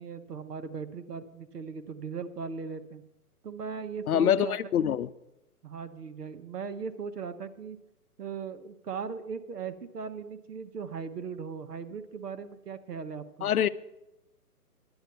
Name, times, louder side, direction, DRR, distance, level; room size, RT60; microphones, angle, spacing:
voice 1, 0.0-3.0 3.4-4.6 5.6-7.8 8.2-13.5, right 6 dB, 75° right, 1.3 m, -38 dB
voice 2, 4.1-5.1 13.4-13.7, left 9 dB, 65° left, 0.7 m, -25 dB
10.5 x 8.8 x 6.9 m
hypercardioid pair, 145°, 47 cm